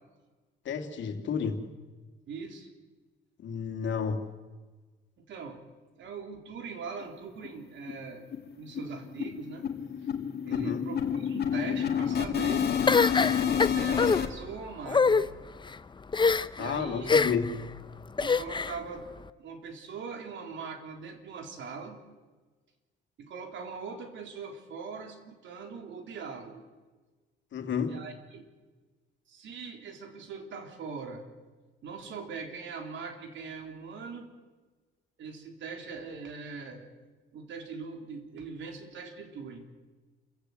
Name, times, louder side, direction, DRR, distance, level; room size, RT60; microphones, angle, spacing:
voice 1, 0.6-1.6 3.4-4.2 10.5-10.8 16.6-17.6 27.5-27.9, left 6 dB, 70° left, 5 dB, 2.8 m, -31 dB
voice 2, 2.3-2.7 5.2-5.6 6.0-8.2 8.6-9.7 10.4-12.8 13.2-15.3 16.6-17.1 18.2-19.1 19.4-22.0 23.2-26.6 27.9-28.5 29.3-31.2 31.8-34.3 35.2-36.9 37.3-39.7, right 5 dB, 70° right, 4 dB, 3.7 m, -41 dB
sound 1, 7.0-7.1 7.4-7.5 7.9-8.1 8.3-14.3, left 8 dB, 55° left, 2.3 m, -29 dB
sound 2, 12.9-14.2 14.9-15.2 16.1-16.6 17.1-17.5 18.2-18.8, left 4 dB, 25° left, 0.7 m, -23 dB
28.0 x 15.5 x 8.0 m, 1.3 s
cardioid pair, 90°, 20 cm